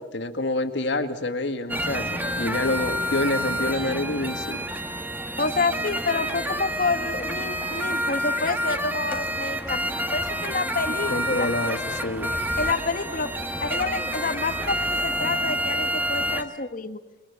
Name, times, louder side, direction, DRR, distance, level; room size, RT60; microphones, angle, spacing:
voice 1, 0.0-4.7 11.1-12.4, left 2 dB, 60° left, 7 dB, 2.0 m, -27 dB
sound 1, 1.7-16.4, equal, 10° right, 1.5 m, -28 dB
voice 2, 5.4-11.5 12.6-13.3 13.6-17.0, left 3 dB, 45° left, 9 dB, 1.4 m, -28 dB
29.0 x 22.5 x 7.1 m, 1.1 s
head